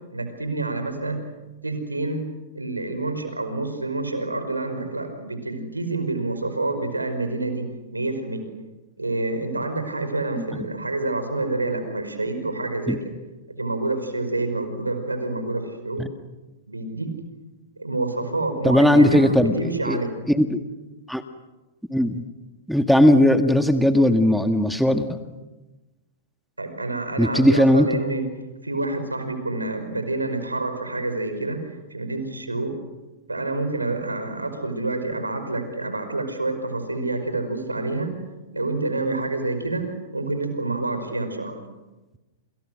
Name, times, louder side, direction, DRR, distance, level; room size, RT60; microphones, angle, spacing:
voice 1, 0.1-1.2 1.6-2.3 2.5-8.4 9.0-13.0 13.6-16.1 16.7-17.1 17.8-20.2 26.6-28.2 28.6-32.7 33.3-38.1 38.5-41.6, right 2 dB, 90° right, 8 dB, 5.2 m, -28 dB
voice 2, 18.6-19.5 19.8-20.0 20.3-20.6 21.1-21.2 21.9-22.2 22.7-25.1 27.2-27.9, left 1 dB, ahead, 7 dB, 1.8 m, -18 dB
28.5 x 28.0 x 6.5 m, 1.1 s
figure-of-eight pair, 105°, 0 cm